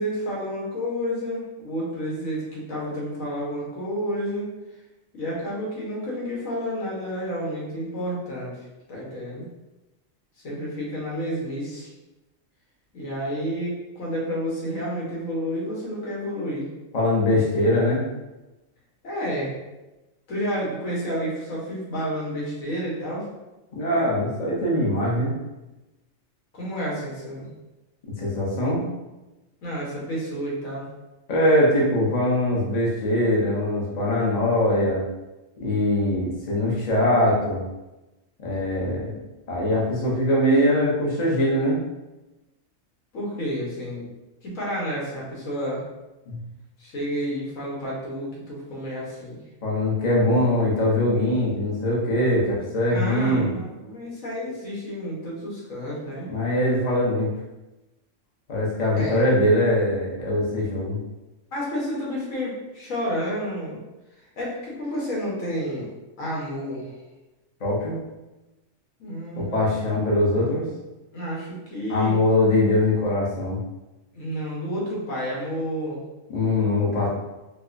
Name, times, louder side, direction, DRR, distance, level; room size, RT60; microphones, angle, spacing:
voice 1, 0.0-4.5 5.1-8.5 8.9-9.5 10.4-11.9 12.9-16.7 17.3-17.7 19.0-19.6 20.3-23.3 26.5-27.5 29.6-30.8 43.1-44.1 44.4-45.8 46.8-49.4 52.9-56.3 58.9-59.3 61.5-63.8 64.4-65.9 66.2-66.9 69.0-69.9 71.1-72.2 74.1-76.0, equal, 85° left, -5 dB, 1.5 m, -30 dB
voice 2, 16.9-18.0 23.7-25.3 28.2-28.8 31.3-35.0 35.6-37.6 38.4-39.2 39.5-41.8 46.3-46.4 49.6-53.5 56.3-57.3 58.5-61.0 67.6-68.0 69.4-70.7 71.9-73.6 76.3-77.1, left 1 dB, 35° left, -4 dB, 0.8 m, -22 dB
4.6 x 2.2 x 2.5 m, 1.0 s
omnidirectional pair, 1.3 m